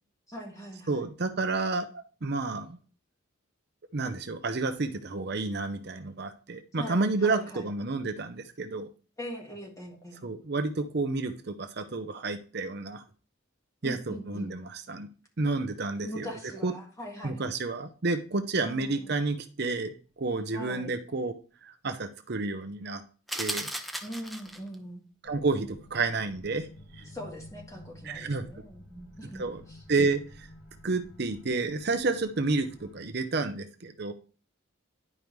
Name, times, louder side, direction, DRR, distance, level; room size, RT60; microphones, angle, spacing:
voice 1, 0.3-1.1 6.8-7.7 9.2-10.3 13.8-14.5 16.0-17.5 18.6-19.2 20.5-20.9 24.0-25.0 27.0-29.8, equal, 15° left, -1 dB, 1.7 m, -41 dB
voice 2, 0.9-2.8 3.9-8.9 10.2-13.0 13.8-15.1 15.4-16.3 16.6-16.7 17.2-21.3 21.6-23.0 23.3-23.7 25.2-26.7 26.9-27.1 28.0-28.4 29.4-29.6 29.9-30.5 30.8-34.1, right 3 dB, 50° right, 8 dB, 0.7 m, -30 dB
sound 1, 23.3-24.8, equal, ahead, 0.5 m, -35 dB
sound 2, 25.2-33.0, left 1 dB, 70° left, 2.2 m, -51 dB
10.5 x 5.2 x 3.1 m, 0.37 s
head